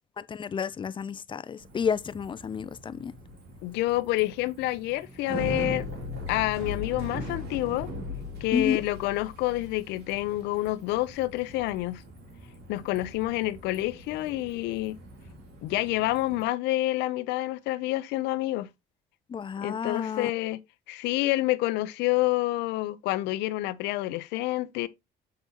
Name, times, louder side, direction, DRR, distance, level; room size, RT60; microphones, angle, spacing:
voice 1, 0.2-3.1 8.5-8.8 19.3-20.3, left 7 dB, 30° left, 0.5 m, -30 dB
Bicycle, 1.6-16.4, left 2 dB, 70° right, 2.8 m, -40 dB
voice 2, 3.6-5.9 6.3-7.9 8.4-12.0 12.7-15.0 15.6-18.7 19.6-20.6 20.9-24.9, left 17 dB, 90° left, 0.6 m, -28 dB
7.7 x 5.6 x 2.9 m
cardioid pair, 110°, 17 cm